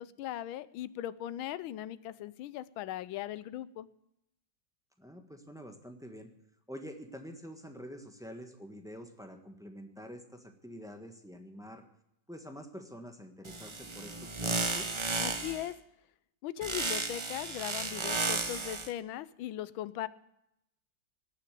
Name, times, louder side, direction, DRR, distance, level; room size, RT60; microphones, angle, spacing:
voice 1, 0.0-3.9 15.2-15.7 16.4-20.1, left 12 dB, 80° left, 17 dB, 1.5 m, -39 dB
voice 2, 5.0-6.3 6.7-11.8 12.3-15.0, equal, ahead, 4 dB, 1.2 m, -47 dB
sound 1, 13.5-15.7 16.6-18.9, right 3 dB, 40° right, 0.4 m, -34 dB
18.0 x 6.8 x 8.4 m, 0.83 s
omnidirectional pair, 2.2 m